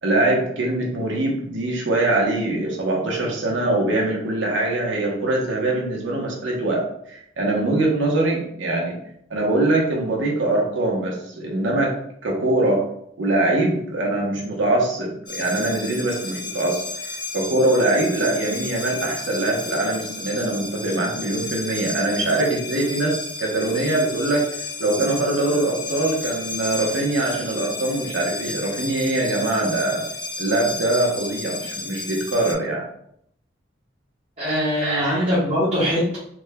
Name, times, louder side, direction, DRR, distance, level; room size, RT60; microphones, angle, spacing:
voice 1, 0.0-9.0 9.3-11.9 12.2-12.8 13.2-30.0 30.4-32.8 34.7-35.3, right 2 dB, 80° right, -2 dB, 0.9 m, -23 dB
sound 1, 15.3-32.5, left 3 dB, 25° left, 0.5 m, -33 dB
voice 2, 34.4-36.2, equal, 35° right, -10 dB, 1.0 m, -22 dB
3.4 x 2.2 x 3.4 m, 0.72 s
head